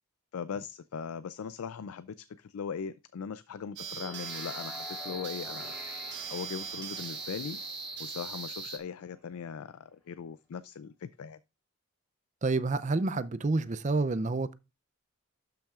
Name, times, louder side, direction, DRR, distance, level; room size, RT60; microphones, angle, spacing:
voice 1, 0.3-5.9 6.3-7.6 8.0-11.4, left 6 dB, 75° left, 0.4 m, -39 dB
sound 1, 3.8-9.3, left 2 dB, 5° right, 3.8 m, -49 dB
sound 2, 3.8-8.8, right 4 dB, 50° right, 1.3 m, -39 dB
voice 2, 12.4-14.5, right 3 dB, 35° right, 0.4 m, -28 dB
12.0 x 5.8 x 2.4 m
head